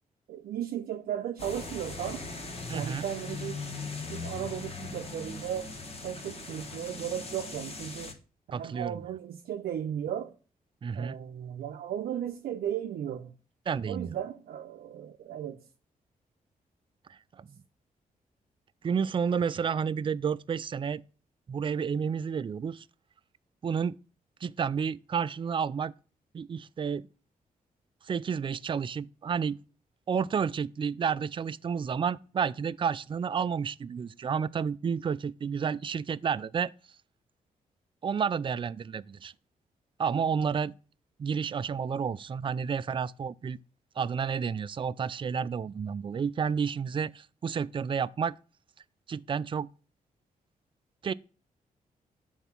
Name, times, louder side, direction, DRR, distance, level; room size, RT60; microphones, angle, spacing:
voice 1, 0.3-2.3 2.7-3.7 4.1-5.7 6.0-8.2 8.6-10.3 10.9-13.3 13.9-15.6, right 10 dB, 80° right, 0.5 m, -35 dB
sound 1, 1.4-8.1, left 3 dB, 40° left, 1.5 m, -40 dB
voice 2, 2.7-3.0 8.5-9.0 10.8-11.2 13.7-14.1 17.1-17.5 18.8-21.0 21.5-22.8 23.6-24.0 24.4-25.9 26.3-27.0 28.0-29.6 30.1-36.7 38.0-39.3 40.0-40.7 41.2-43.6 44.0-48.3 49.1-49.7 51.0-51.1, right 6 dB, 35° right, 0.3 m, -30 dB
8.0 x 4.0 x 5.9 m
cardioid pair, 65°, 15 cm